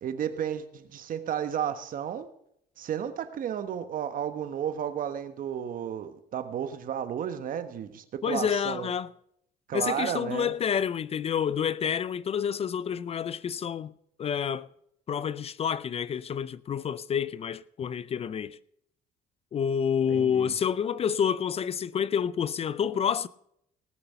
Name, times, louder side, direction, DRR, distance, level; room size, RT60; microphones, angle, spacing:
voice 1, 0.0-2.3 2.8-8.9 9.7-10.5 20.1-20.5, right 9 dB, 55° right, 1.2 m, -33 dB
voice 2, 8.2-9.1 9.7-13.9 14.2-14.7 15.1-18.6 19.5-23.3, left 8 dB, 35° left, 0.4 m, -28 dB
18.5 x 6.8 x 5.6 m
cardioid pair, 110°, 17 cm